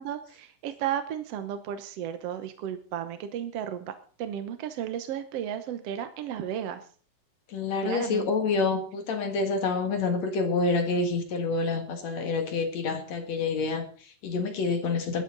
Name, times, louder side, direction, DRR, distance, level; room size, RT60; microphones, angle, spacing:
voice 1, 0.0-3.9 4.2-6.8 7.8-8.3, right 10 dB, 65° right, 9 dB, 1.6 m, -34 dB
voice 2, 7.5-15.2, left 4 dB, 55° left, 6 dB, 2.9 m, -28 dB
19.0 x 12.5 x 4.0 m, 0.43 s
omnidirectional pair, 3.8 m